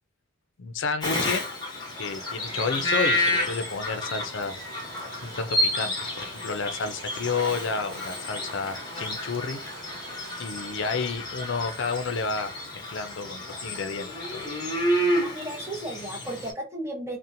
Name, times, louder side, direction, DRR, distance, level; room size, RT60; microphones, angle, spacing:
voice 1, 0.6-1.4 2.0-4.6 5.2-9.6 10.4-14.4, left 4 dB, 65° left, 0.5 m, -31 dB
Bird vocalization bird call bird song, 1.0-16.5, left 1 dB, 20° left, 0.8 m, -30 dB
sound 1, 2.1-11.2, right 3 dB, 65° right, 0.7 m, -45 dB
voice 2, 14.8-17.2, right 1 dB, 15° right, 0.7 m, -35 dB
2.8 x 2.1 x 2.6 m
head